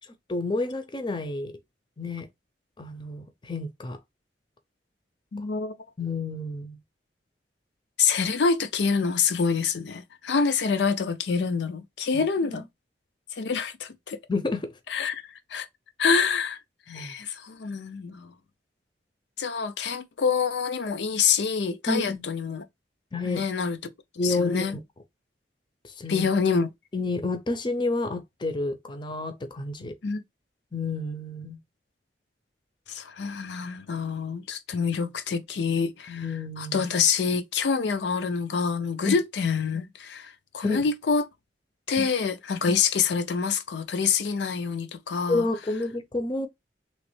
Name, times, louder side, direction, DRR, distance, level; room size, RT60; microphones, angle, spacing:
voice 1, 0.3-1.5 2.0-2.3 2.8-4.0 6.0-6.8 12.1-12.6 14.3-14.7 16.9-17.2 21.9-22.2 23.1-23.4 24.2-24.8 25.8-26.2 26.9-29.9 30.7-31.6 36.1-36.9 39.0-39.2 40.6-40.9 42.0-42.1 45.3-46.5, left 3 dB, 25° left, 0.5 m, -29 dB
voice 2, 5.3-5.8 8.0-12.6 13.4-14.2 14.9-15.2 15.5-15.7 16.0-16.6 16.9-18.3 19.4-22.6 23.2-23.8 24.2-24.8 26.1-26.7 30.0-30.2 32.9-36.3 36.6-41.2 41.9-45.5, left 5 dB, 75° left, 0.5 m, -26 dB
3.1 x 3.0 x 3.1 m
head